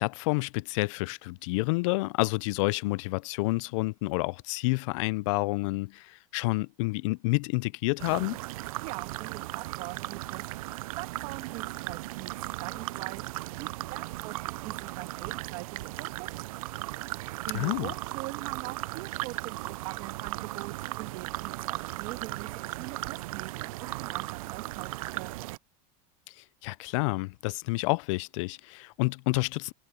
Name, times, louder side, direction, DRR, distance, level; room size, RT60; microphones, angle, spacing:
voice 1, 0.0-8.4 17.5-17.9 26.3-29.7, left 24 dB, 60° left, 0.4 m, -29 dB
sound 1, 8.0-25.6, right 19 dB, 85° right, 0.4 m, -37 dB
voice 2, 8.8-13.3 13.6-16.6 17.4-25.5, right 20 dB, 50° right, 2.5 m, -43 dB
supercardioid pair, 150°, 18 cm